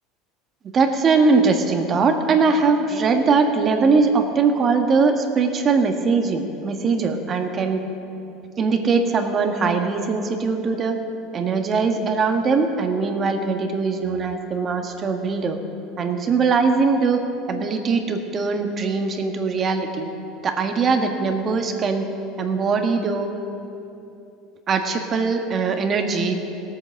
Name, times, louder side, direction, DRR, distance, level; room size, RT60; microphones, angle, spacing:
voice 1, 0.7-7.8 8.6-11.0 11.3-15.6 16.0-17.2 17.5-20.1 20.4-22.0 22.4-23.3 24.7-26.3, right 4 dB, 35° right, 5 dB, 1.5 m, -21 dB
17.5 x 8.7 x 6.6 m, 2.8 s
supercardioid pair, 95°, 0 cm